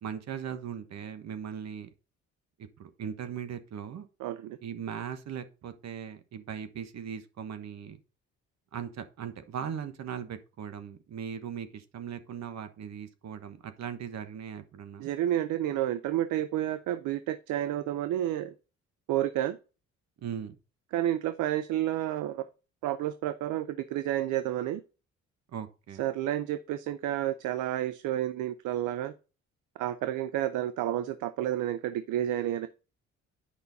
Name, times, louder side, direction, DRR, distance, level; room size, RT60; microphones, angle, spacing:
voice 1, 0.0-1.9 2.6-4.1 4.6-8.0 8.7-15.1 20.2-20.6 25.5-26.0, right 8 dB, 60° right, 9 dB, 1.2 m, -39 dB
voice 2, 4.2-4.6 15.0-18.5 19.1-19.6 20.9-22.4 22.8-24.8 26.0-29.1 29.8-32.7, right 12 dB, 90° right, 12 dB, 0.6 m, -30 dB
8.5 x 5.6 x 4.0 m, 0.33 s
cardioid pair, 90°, 30 cm